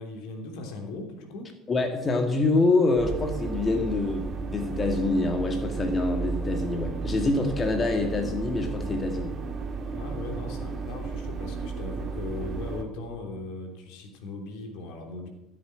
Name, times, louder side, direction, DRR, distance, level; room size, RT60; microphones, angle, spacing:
voice 1, 0.0-1.5 9.9-15.3, left 2 dB, 65° left, 3 dB, 3.1 m, -38 dB
voice 2, 1.7-9.4, left 3 dB, 30° left, 4 dB, 1.9 m, -26 dB
sound 1, 3.0-12.8, right 4 dB, 40° right, 2.0 m, -33 dB
15.5 x 7.9 x 8.1 m, 0.96 s
hypercardioid pair, 65°, 0 cm